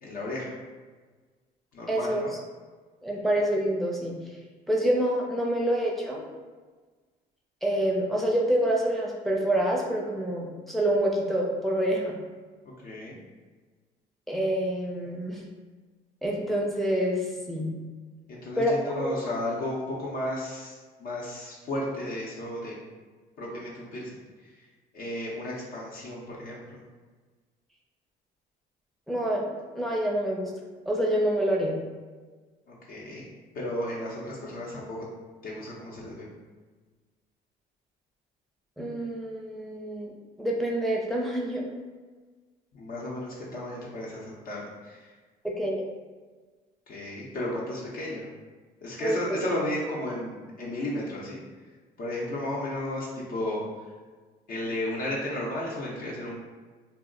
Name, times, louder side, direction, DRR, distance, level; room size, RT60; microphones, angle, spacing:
voice 1, 0.0-0.5 1.7-2.3 12.8-13.2 18.3-22.8 23.4-24.6 24.9-26.8 32.7-33.3 33.5-35.0 35.4-36.3 42.7-45.1 46.9-48.3 48.8-51.4 52.0-53.6 54.5-56.3, left 1 dB, 60° left, -5 dB, 0.7 m, -34 dB
voice 2, 1.9-2.2 3.0-4.2 4.7-6.2 7.6-12.2 14.3-15.4 16.2-17.7 18.6-19.1 29.1-30.5 30.9-31.8 38.8-40.1 40.4-41.7 45.4-45.8 49.0-49.2, right 1 dB, ahead, -3 dB, 0.5 m, -27 dB
2.3 x 2.0 x 3.7 m, 1.4 s
cardioid pair, 110°, 17 cm